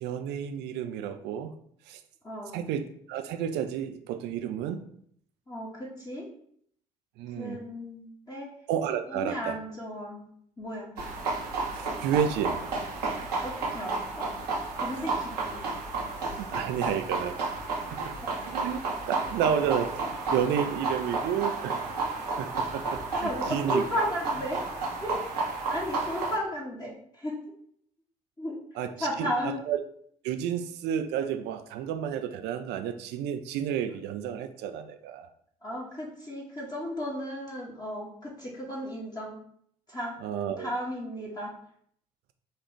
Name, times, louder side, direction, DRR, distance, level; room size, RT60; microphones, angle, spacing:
voice 1, 0.0-1.5 1.9-2.0 2.5-4.8 7.2-7.6 8.7-9.6 11.7-12.6 16.4-17.4 17.9-18.1 18.4-18.8 19.1-21.8 22.4-23.8 28.8-29.8 30.2-35.3 40.2-40.7, right 9 dB, 60° right, 9 dB, 0.4 m, -31 dB
voice 2, 2.2-2.6 5.5-6.3 7.4-8.5 9.1-10.3 10.6-10.9 13.4-14.3 14.7-15.6 18.2-18.3 23.1-24.6 25.0-25.2 25.7-27.3 28.4-28.6 29.0-29.6 35.6-39.4 39.9-40.2 40.6-41.5, equal, 20° left, -4 dB, 1.2 m, -34 dB
sound 1, 11.0-26.4, right 3 dB, 85° right, 0.9 m, -32 dB
4.2 x 2.4 x 3.1 m, 0.65 s
figure-of-eight pair, 45°, 20 cm